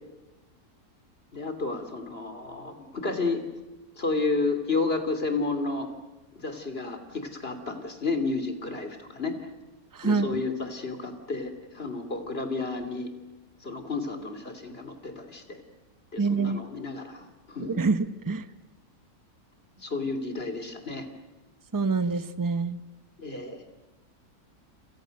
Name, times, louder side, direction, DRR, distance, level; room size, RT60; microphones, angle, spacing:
voice 1, 1.3-3.4 4.0-5.9 6.3-9.3 10.0-13.1 13.6-15.6 16.1-17.9 19.8-21.1 23.2-23.6, left 3 dB, 40° left, 6 dB, 3.2 m, -31 dB
voice 2, 9.9-10.4 16.2-16.6 17.6-18.5 21.7-22.8, right 4 dB, 15° right, 12 dB, 0.7 m, -26 dB
29.5 x 28.0 x 6.5 m, 1.1 s
omnidirectional pair, 1.6 m